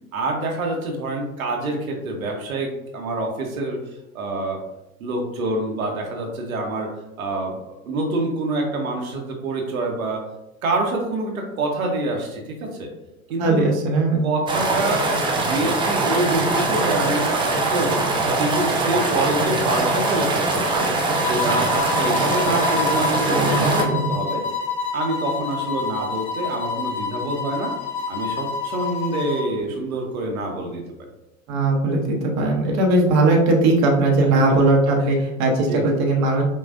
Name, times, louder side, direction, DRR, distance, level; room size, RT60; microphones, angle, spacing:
voice 1, 0.1-3.8 4.1-4.6 5.0-10.2 10.6-12.9 13.3-13.7 14.2-18.0 18.4-20.9 21.3-24.4 24.9-27.7 28.1-30.8 34.2-34.5 35.6-35.8, right 2 dB, 80° right, 1 dB, 1.0 m, -26 dB
voice 2, 13.4-14.2 23.3-24.1 31.5-36.4, right 2 dB, 40° right, 1 dB, 0.9 m, -19 dB
sound 1, 14.5-23.8, right 2 dB, 10° right, 0.4 m, -22 dB
sound 2, 21.2-29.5, left 5 dB, 50° left, 1.0 m, -28 dB
5.5 x 2.4 x 2.5 m, 0.91 s
hypercardioid pair, 100°, 41 cm